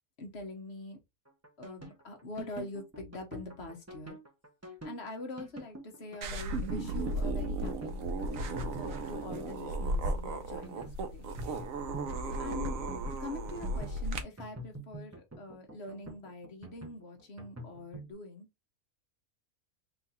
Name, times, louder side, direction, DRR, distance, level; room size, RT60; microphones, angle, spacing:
voice 1, 0.2-1.0 1.6-4.2 4.8-11.3 12.4-12.8 13.1-18.5, left 2 dB, 50° left, 1.3 m, -44 dB
sound 1, 1.3-18.1, right 2 dB, 15° right, 0.5 m, -47 dB
sound 2, 6.2-14.2, right 2 dB, 70° right, 1.1 m, -35 dB
3.9 x 2.5 x 4.2 m
omnidirectional pair, 1.5 m